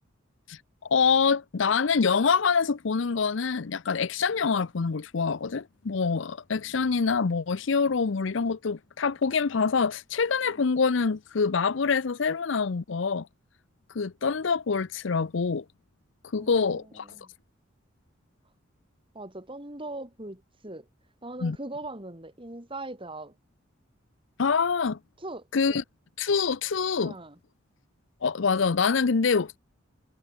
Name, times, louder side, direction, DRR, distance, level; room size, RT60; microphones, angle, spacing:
voice 1, 0.5-13.3 13.9-15.6 16.3-17.1 21.4-21.6 24.4-25.0 25.5-25.8 26.2-27.1 28.2-29.6, left 5 dB, 65° left, 0.6 m, -25 dB
voice 2, 16.4-17.3 19.1-20.9 21.2-23.3 25.2-25.8 27.0-27.4, right 2 dB, 25° right, 3.6 m, -40 dB
head